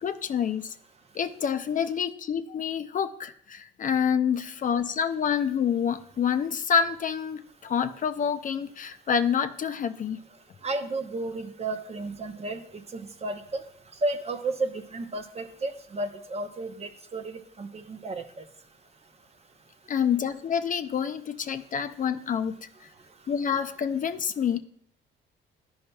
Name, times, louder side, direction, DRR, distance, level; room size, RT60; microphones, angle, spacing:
voice 1, 0.0-0.7 1.1-10.2 19.9-22.6 23.3-24.6, left 7 dB, 40° left, 8 dB, 0.4 m, -27 dB
voice 2, 10.6-13.6 14.0-18.4, right 2 dB, 30° right, 8 dB, 0.6 m, -33 dB
11.0 x 5.5 x 2.3 m, 0.64 s
cardioid pair, 90°, 20 cm